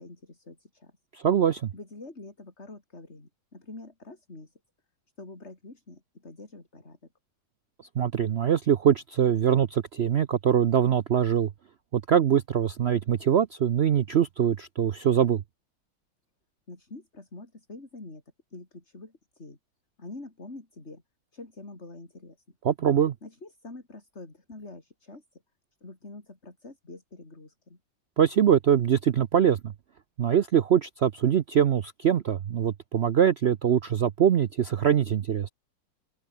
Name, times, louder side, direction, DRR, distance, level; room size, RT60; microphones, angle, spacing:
voice 1, 0.0-1.0 1.7-4.5 5.2-7.0 16.7-18.2 18.5-19.6 20.0-21.0 21.3-22.6 23.2-25.4 25.8-27.8, left 2 dB, 35° left, 4.4 m, -46 dB
voice 2, 1.1-1.7 8.0-11.5 11.9-15.4 22.6-23.1 28.2-29.7 30.2-35.5, right 9 dB, 75° right, 0.5 m, -23 dB
open air
omnidirectional pair, 2.0 m